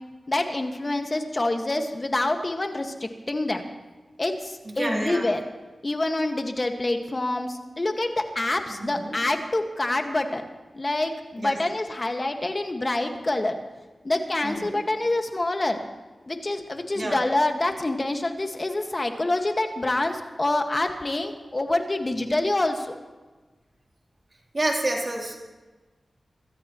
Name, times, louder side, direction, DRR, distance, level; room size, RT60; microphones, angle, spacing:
voice 1, 0.3-3.6 4.2-5.4 5.8-10.5 10.7-13.6 14.0-15.8 16.3-22.9, left 2 dB, 40° left, 5 dB, 1.8 m, -26 dB
voice 2, 4.7-5.3 8.8-9.2 11.4-11.6 14.4-14.9 17.0-17.2 24.5-25.4, right 1 dB, 45° right, 0 dB, 3.5 m, -29 dB
24.5 x 14.0 x 3.1 m, 1.2 s
cardioid pair, 40°, 0 cm